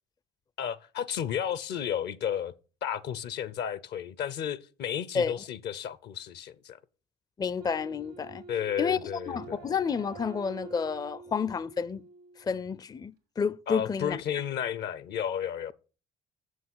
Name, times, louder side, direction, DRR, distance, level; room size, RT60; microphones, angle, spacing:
voice 1, 0.6-2.5 2.8-6.8 8.5-9.6 13.7-15.7, left 9 dB, 60° left, 0.7 m, -33 dB
voice 2, 7.4-8.4 8.8-9.0 9.3-12.0 12.4-14.2, left 6 dB, 20° left, 0.4 m, -30 dB
Wind instrument woodwind instrument, 7.6-12.6, right 6 dB, 90° right, 1.6 m, -47 dB
6.9 x 6.4 x 7.7 m
hypercardioid pair, 55°, 19 cm